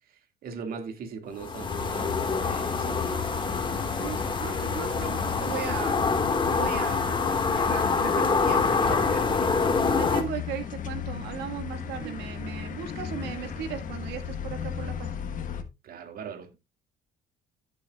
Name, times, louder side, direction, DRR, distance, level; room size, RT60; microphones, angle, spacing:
voice 1, 0.1-2.1 2.4-3.5 12.0-12.2 15.8-16.5, right 5 dB, 60° right, 2.1 m, -40 dB
sound 1, 1.4-10.2, left 4 dB, 30° left, 1.8 m, -26 dB
sound 2, 1.7-15.6, left 8 dB, 50° left, 1.3 m, -37 dB
voice 2, 4.0-6.0 6.5-9.4 9.9-15.1, right 9 dB, 80° right, 1.9 m, -37 dB
15.0 x 7.0 x 2.4 m
cardioid pair, 110°, 17 cm